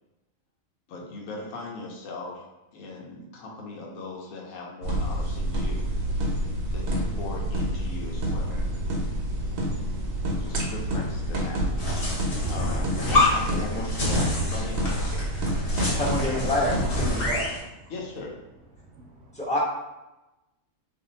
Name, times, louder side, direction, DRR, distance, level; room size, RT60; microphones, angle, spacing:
voice 1, 0.9-2.5 2.7-5.9 6.7-8.7 10.4-11.7 12.5-15.1 17.9-18.3, left 2 dB, 75° left, -1 dB, 1.0 m, -38 dB
sound 1, 4.8-17.1, equal, 85° right, 1.1 m, -28 dB
sound 2, 11.8-17.6, left 2 dB, 50° left, 1.0 m, -27 dB
voice 2, 15.1-16.7 18.8-19.4, right 2 dB, 65° right, 1 dB, 0.8 m, -39 dB
voice 3, 16.0-17.4 19.3-19.6, left 1 dB, 5° left, -7 dB, 0.8 m, -27 dB
2.6 x 2.5 x 3.9 m, 0.99 s
omnidirectional pair, 1.4 m